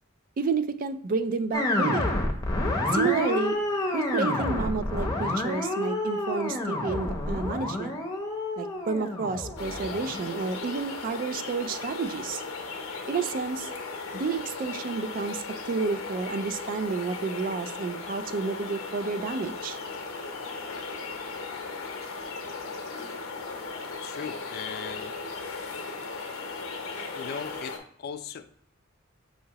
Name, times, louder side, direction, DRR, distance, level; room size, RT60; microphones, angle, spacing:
voice 1, 0.4-2.1 2.9-3.6 3.9-7.9 8.6-12.4 13.1-13.7 14.1-19.8, right 4 dB, 45° right, 12 dB, 0.3 m, -30 dB
sound 1, 1.5-10.8, left 1 dB, 20° left, 0.6 m, -29 dB
sound 2, 9.6-27.8, left 4 dB, 85° left, 0.7 m, -37 dB
voice 2, 24.0-25.2 27.1-28.6, left 6 dB, 50° left, 10 dB, 0.3 m, -38 dB
5.6 x 2.8 x 2.8 m, 0.62 s
head